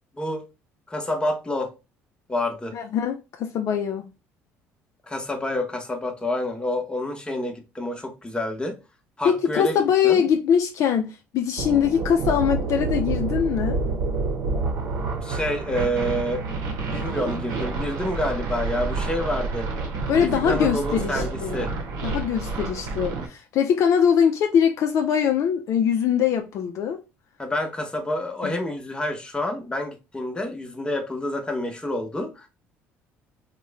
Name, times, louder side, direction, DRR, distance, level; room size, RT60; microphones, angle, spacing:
voice 1, 0.9-1.7 2.3-2.8 5.1-8.8 9.2-9.8 10.0-10.2 15.2-16.4 16.9-19.7 20.1-21.7 27.4-32.5, left 1 dB, 15° left, 0.9 m, -28 dB
voice 2, 2.7-4.1 9.2-13.8 20.1-21.6 22.0-27.0 28.4-28.6, left 8 dB, 60° left, 0.4 m, -22 dB
sound 1, 11.6-23.3, right 3 dB, 70° right, 0.9 m, -28 dB
2.9 x 2.1 x 3.3 m
hypercardioid pair, 70°, 6 cm